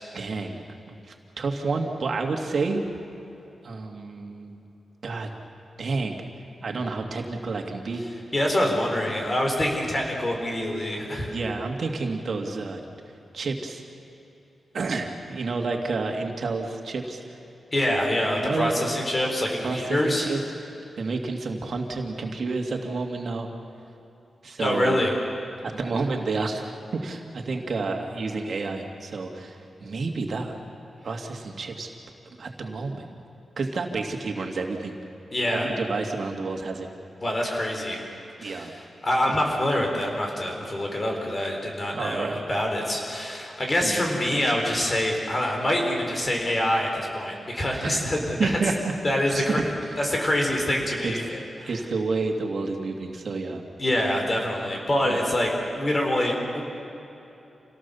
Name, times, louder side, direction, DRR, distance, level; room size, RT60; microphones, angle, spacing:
voice 1, 0.1-2.8 3.6-4.6 5.0-5.3 5.8-6.2 6.6-8.0 8.6-8.7 11.3-12.8 13.3-13.8 14.7-17.4 18.4-18.8 19.6-20.7 21.0-23.5 24.4-25.0 25.6-30.6 31.0-31.9 32.4-33.1 33.6-34.9 35.5-36.9 38.4-38.7 41.9-42.4 43.8-44.0 47.8-48.0 48.4-48.9 49.3-50.0 51.0-51.1 51.7-53.6 55.1-55.2, right 3 dB, 60° right, 3 dB, 2.4 m, -30 dB
voice 2, 8.3-11.3 17.7-20.3 24.6-25.2 35.3-35.7 37.2-38.0 38.4-48.6 49.0-49.6 50.0-51.7 53.8-56.6, left 1 dB, 30° left, 1 dB, 4.7 m, -25 dB
28.0 x 17.5 x 7.1 m, 2.9 s
wide cardioid pair, 105°, 0 cm